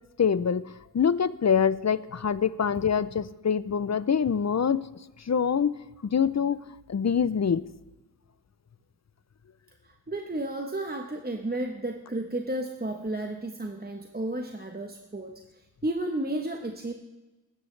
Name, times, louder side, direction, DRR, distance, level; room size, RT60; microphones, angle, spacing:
voice 1, 0.2-0.7 0.9-4.8 5.3-5.7 6.0-6.6 6.9-7.6, left 7 dB, 45° left, 17 dB, 0.5 m, -25 dB
voice 2, 9.8-15.3 15.8-16.9, right 1 dB, 25° right, 3 dB, 1.0 m, -32 dB
20.0 x 9.9 x 3.2 m, 1.1 s
wide cardioid pair, 60°, 38 cm